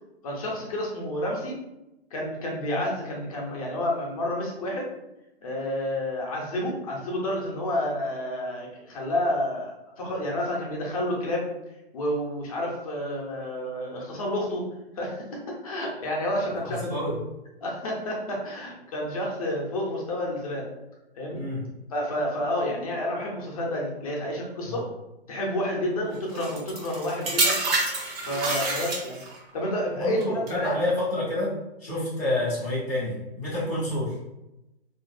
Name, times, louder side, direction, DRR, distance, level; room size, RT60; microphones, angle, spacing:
voice 1, 0.2-1.6 2.1-4.9 5.4-11.5 11.9-14.7 15.0-15.2 15.6-16.8 17.6-20.7 21.2-21.4 21.9-24.8 25.3-27.6 28.2-29.2 29.5-30.8 31.9-32.0, left 1 dB, 35° left, -2 dB, 0.6 m, -29 dB
voice 2, 16.6-17.2 21.3-21.7 24.7-24.8 29.9-34.2, left 1 dB, 15° right, -15 dB, 0.3 m, -29 dB
sound 1, 26.3-29.4 30.2-30.5, right 2 dB, 65° right, 0.9 m, -27 dB
2.5 x 2.2 x 2.3 m, 0.92 s
hypercardioid pair, 150°, 31 cm